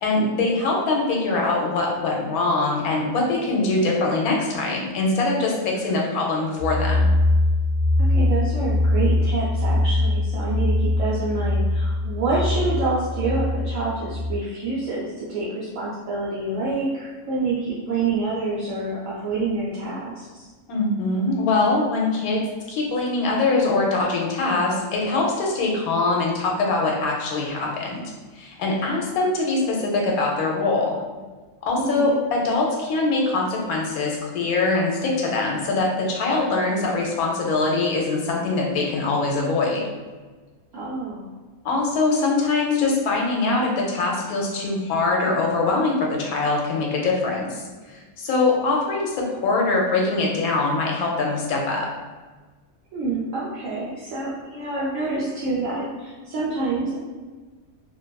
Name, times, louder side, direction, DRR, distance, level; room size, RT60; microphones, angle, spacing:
voice 1, 0.0-7.1 20.7-22.4 22.7-28.0 28.4-31.0 31.6-39.8 41.6-51.9, left 3 dB, 80° left, -1 dB, 1.1 m, -23 dB
sound 1, 6.6-14.4, left 2 dB, 50° left, 1.0 m, -22 dB
voice 2, 8.1-20.5 31.8-32.2 40.7-41.3 52.9-57.0, right 3 dB, 70° right, -7 dB, 0.8 m, -27 dB
2.6 x 2.4 x 2.2 m, 1.3 s
omnidirectional pair, 1.5 m